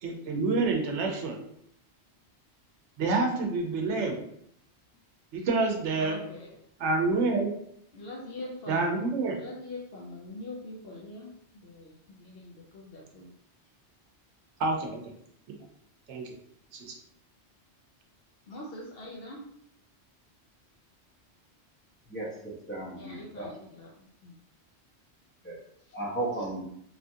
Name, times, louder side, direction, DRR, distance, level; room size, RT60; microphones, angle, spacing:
voice 1, 0.0-1.4 3.0-4.2 5.3-6.2 6.8-7.5 8.7-9.4 14.6-15.0 16.1-16.3 16.7-16.9, right 3 dB, 85° right, 1 dB, 1.0 m, -27 dB
voice 2, 6.0-6.6 7.9-8.9 9.3-13.3 18.5-19.5 22.9-24.4 25.8-26.0, left 2 dB, 65° left, -3 dB, 0.7 m, -43 dB
voice 3, 22.1-23.5 25.4-25.6 25.9-26.6, right 2 dB, 15° left, -8 dB, 0.6 m, -35 dB
3.1 x 2.4 x 2.6 m, 0.70 s
omnidirectional pair, 1.2 m